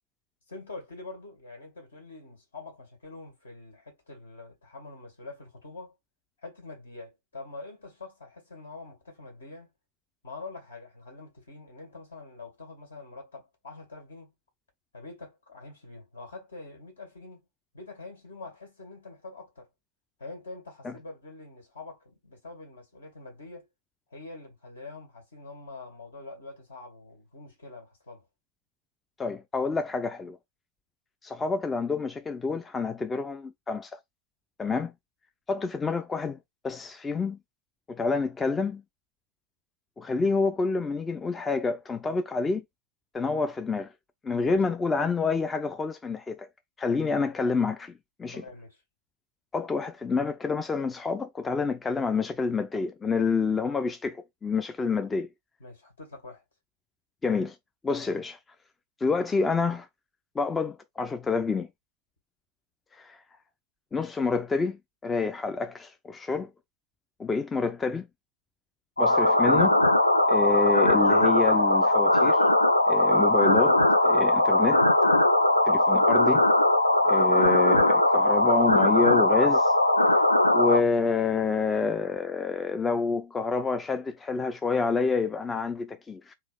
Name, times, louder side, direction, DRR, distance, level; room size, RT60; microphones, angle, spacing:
voice 1, 0.5-6.0 6.4-9.7 10.2-14.3 14.9-17.4 17.7-19.7 20.2-23.6 24.1-28.2 44.4-44.5 48.3-48.8 55.6-56.4, left 3 dB, 70° left, 2.1 m, -45 dB
voice 2, 29.2-30.4 31.2-34.0 34.6-34.9 35.5-36.4 36.6-37.4 37.9-38.8 40.0-42.6 43.1-43.9 44.2-46.5 46.8-47.9 48.2-48.4 49.5-55.3 57.2-57.6 57.8-58.4 59.0-59.9 60.4-61.7 63.0-63.2 63.9-64.8 65.0-66.5 67.2-68.1 69.0-69.8 70.3-72.4 72.9-74.8 75.7-76.5 77.0-79.7 80.5-86.3, left 4 dB, 15° left, 0.4 m, -28 dB
sound 1, 69.0-80.8, left 1 dB, 85° left, 0.5 m, -20 dB
3.7 x 2.4 x 4.0 m
figure-of-eight pair, 90°, 0 cm